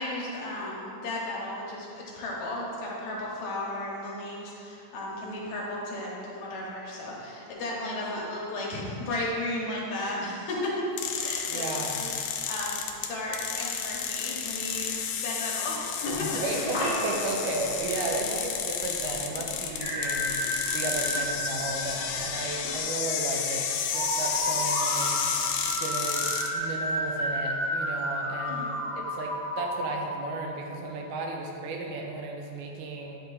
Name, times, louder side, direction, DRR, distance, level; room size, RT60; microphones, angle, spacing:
voice 1, 0.0-10.8 11.2-16.3 28.5-28.8, left 1 dB, 70° left, -4 dB, 2.3 m, -34 dB
sound 1, 11.0-26.5, left 7 dB, 90° left, 2.1 m, -31 dB
voice 2, 11.5-12.0 16.4-25.1 25.8-26.3 26.5-28.7 29.0-33.2, right 2 dB, 80° right, 1 dB, 2.2 m, -34 dB
sound 2, 16.0-22.8, left 1 dB, 55° left, 1.2 m, -38 dB
sound 3, 19.8-22.6 23.9-31.0, equal, 65° right, 0.8 m, -32 dB
10.0 x 3.6 x 3.9 m, 2.8 s
omnidirectional pair, 3.6 m